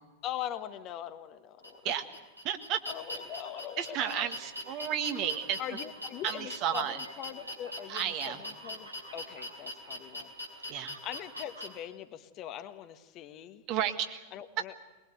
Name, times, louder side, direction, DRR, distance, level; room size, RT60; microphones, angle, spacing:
voice 1, 0.2-1.9 2.9-4.3 4.7-4.9 5.6-10.3 10.6-13.6 14.3-14.7, left 11 dB, 35° left, 9 dB, 1.4 m, -42 dB
sound 1, 1.6-11.7, left 1 dB, 90° right, 5.0 m, -42 dB
voice 2, 2.4-2.8 3.8-5.6 6.2-7.0 7.9-8.4 10.7-11.0 13.7-14.2, right 9 dB, 40° right, 8 dB, 1.8 m, -32 dB
22.5 x 21.5 x 8.2 m, 1.2 s
figure-of-eight pair, 90°, 0 cm